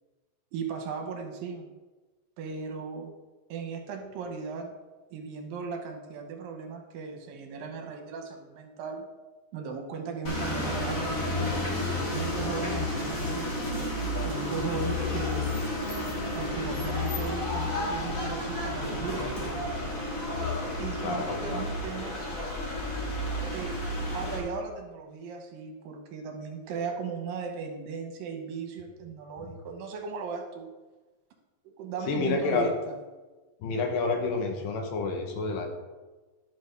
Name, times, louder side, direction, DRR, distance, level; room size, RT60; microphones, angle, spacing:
voice 1, 0.5-1.7 2.4-3.1 3.5-4.8 5.1-9.1 9.5-11.1 11.7-15.5 16.3-19.3 20.8-22.3 23.5-30.7 31.8-33.0, right 5 dB, 85° right, 3 dB, 2.7 m, -37 dB
sound 1, 10.2-24.4, left 1 dB, 45° left, 1.0 m, -31 dB
voice 2, 21.0-21.6 29.4-29.5 32.1-32.7 33.6-35.7, left 4 dB, 75° left, 3 dB, 2.6 m, -29 dB
11.0 x 6.0 x 3.4 m, 1.2 s
omnidirectional pair, 4.1 m